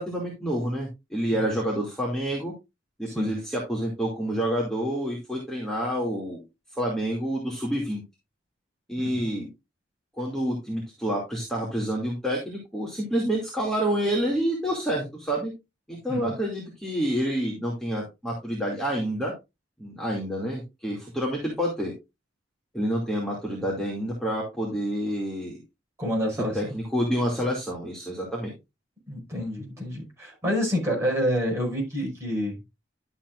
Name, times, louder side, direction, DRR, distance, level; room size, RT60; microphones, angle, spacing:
voice 1, 0.0-2.5 3.0-6.4 6.7-8.0 8.9-9.5 10.2-15.5 15.9-19.3 19.8-21.9 22.7-25.6 26.3-28.5, equal, 5° left, 2.4 m, -28 dB
voice 2, 26.0-26.8 29.1-32.6, equal, 15° right, 5.2 m, -28 dB
11.5 x 7.4 x 2.5 m
head